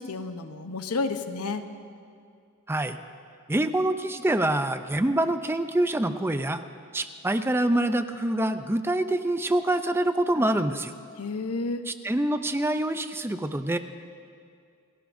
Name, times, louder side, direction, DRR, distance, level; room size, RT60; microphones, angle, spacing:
voice 1, 0.0-1.7 11.2-11.8, left 3 dB, 85° left, 8 dB, 0.9 m, -31 dB
voice 2, 3.5-6.6 6.9-10.9 11.9-13.8, right 1 dB, 10° right, 9 dB, 0.5 m, -25 dB
29.0 x 16.5 x 2.7 m, 2.3 s
head